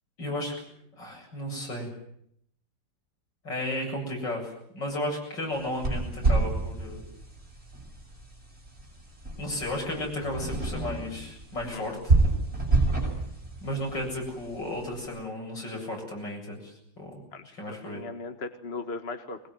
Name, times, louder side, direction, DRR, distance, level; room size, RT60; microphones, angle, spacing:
voice 1, 0.2-0.5 1.0-1.9 3.4-7.0 9.4-12.1 13.6-17.1 17.6-18.0, left 1 dB, 70° left, 0 dB, 8.7 m, -34 dB
sound 1, 5.5-14.9, right 3 dB, 30° right, 7.6 m, -29 dB
voice 2, 17.3-19.5, left 3 dB, 35° left, 7 dB, 1.6 m, -38 dB
23.0 x 21.0 x 9.5 m, 0.72 s
omnidirectional pair, 2.0 m